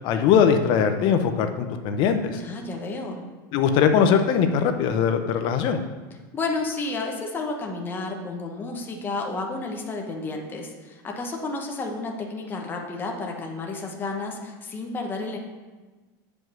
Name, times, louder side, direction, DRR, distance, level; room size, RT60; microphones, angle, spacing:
voice 1, 0.0-2.4 3.5-5.8, left 7 dB, 45° left, 7 dB, 0.8 m, -21 dB
voice 2, 2.4-3.2 6.3-15.4, left 3 dB, 20° left, 1 dB, 1.0 m, -31 dB
7.8 x 5.3 x 6.1 m, 1.3 s
supercardioid pair, 150°, 11 cm